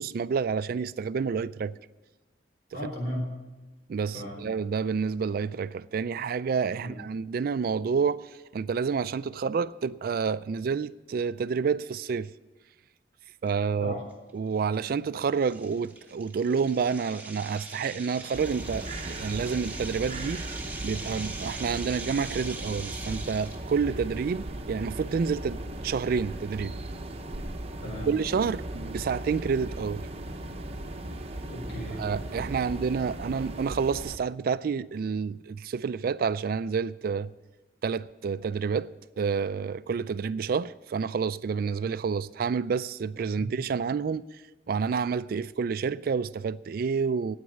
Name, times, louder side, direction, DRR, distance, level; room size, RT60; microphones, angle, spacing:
voice 1, 0.0-1.8 3.9-12.3 13.4-13.9 14.3-20.5 20.8-26.7 28.1-30.1 32.0-37.3 37.8-38.9 39.2-44.3 44.7-47.4, right 5 dB, 55° right, 0.3 m, -29 dB
voice 2, 2.7-3.3 4.1-4.4 6.8-7.0 13.8-14.0 27.8-28.1 31.5-32.0 43.4-43.5, equal, 65° left, 4.2 m, -35 dB
sound 1, 13.5-13.6 14.1-14.3 14.7-14.8 15.4-23.7, right 3 dB, 10° right, 1.5 m, -42 dB
sound 2, 18.3-34.2, right 1 dB, 35° right, 0.9 m, -37 dB
9.5 x 8.9 x 9.9 m
head